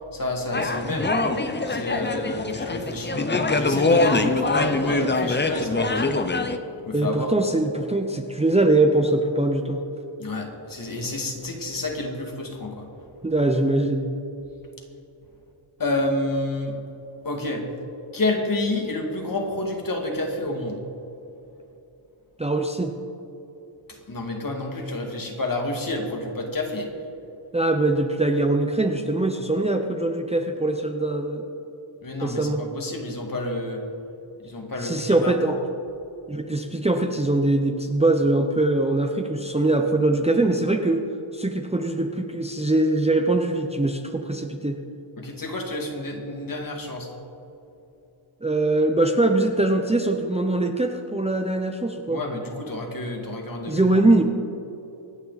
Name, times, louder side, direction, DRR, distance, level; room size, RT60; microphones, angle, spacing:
voice 1, 0.1-1.2 1.7-6.3 6.9-7.3 10.2-12.9 15.8-16.8 17.2-17.7 18.1-20.8 23.9-26.9 32.0-33.8 34.4-35.3 45.2-47.1 52.1-54.0, left 2 dB, 40° left, 1 dB, 2.3 m, -29 dB
sound 1, 0.5-6.6, left 3 dB, 20° left, 0.7 m, -23 dB
voice 2, 6.9-9.8 13.2-14.1 22.4-22.9 27.5-31.5 32.2-32.6 34.8-35.6 36.3-41.0 41.3-44.8 48.4-52.2 53.7-54.2, right 2 dB, 15° right, 4 dB, 0.7 m, -22 dB
26.0 x 9.7 x 4.1 m, 2.9 s
wide cardioid pair, 145°, 49 cm